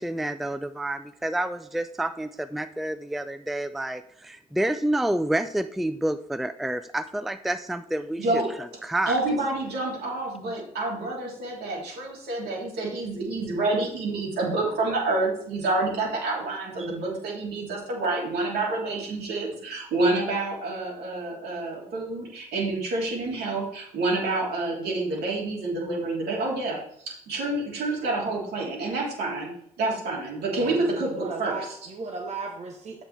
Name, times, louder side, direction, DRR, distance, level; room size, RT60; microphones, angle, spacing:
voice 1, 0.0-8.4 8.8-9.2 16.8-16.9, right 1 dB, ahead, 11 dB, 0.4 m, -29 dB
voice 2, 9.1-26.8 27.0-29.5 29.8-31.8, right 2 dB, 65° right, -3 dB, 3.0 m, -28 dB
voice 3, 30.6-33.0, right 4 dB, 40° right, 2 dB, 1.1 m, -36 dB
8.0 x 7.3 x 3.3 m, 0.68 s
hypercardioid pair, 50°, 18 cm